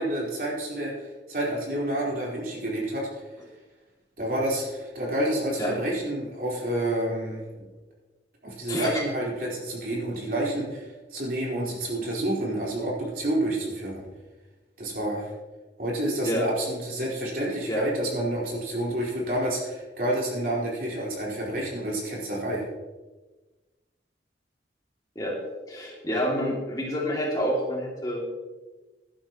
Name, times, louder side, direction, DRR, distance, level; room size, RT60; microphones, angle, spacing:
voice 1, 0.0-3.1 4.2-7.6 8.4-14.0 14.8-15.3 15.8-22.7, right 1 dB, 55° right, -4 dB, 4.4 m, -29 dB
voice 2, 8.7-9.0 16.2-16.5 17.7-17.9 25.2-25.4 25.7-28.3, equal, 20° left, -3 dB, 2.5 m, -28 dB
16.0 x 11.5 x 3.1 m, 1.2 s
head